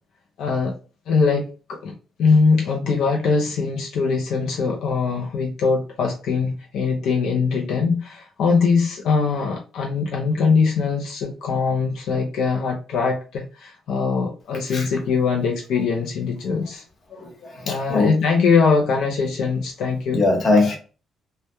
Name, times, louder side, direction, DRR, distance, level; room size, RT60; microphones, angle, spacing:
voice 1, 0.4-0.7 1.1-1.9 2.2-16.8 17.7-20.2, left 5 dB, 75° left, 1 dB, 0.4 m, -22 dB
voice 2, 17.1-18.1 20.1-20.8, left 3 dB, 45° left, 2 dB, 0.9 m, -21 dB
2.2 x 2.0 x 2.9 m, 0.35 s
cardioid pair, 90°, 0 cm